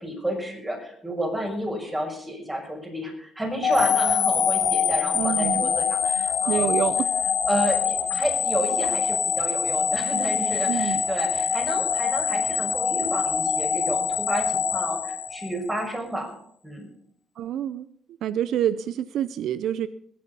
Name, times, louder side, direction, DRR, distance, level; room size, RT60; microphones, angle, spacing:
voice 1, 0.0-6.8 7.5-16.3 16.6-16.9, equal, 15° right, 1 dB, 6.3 m, -30 dB
sound 1, 3.6-15.8, left 7 dB, 55° left, 1.3 m, -24 dB
voice 2, 5.1-5.7 6.4-7.1 10.7-11.0 17.4-17.9 18.2-19.9, right 10 dB, 75° right, 15 dB, 0.6 m, -27 dB
20.0 x 8.6 x 5.4 m, 0.67 s
cardioid pair, 90°, 0 cm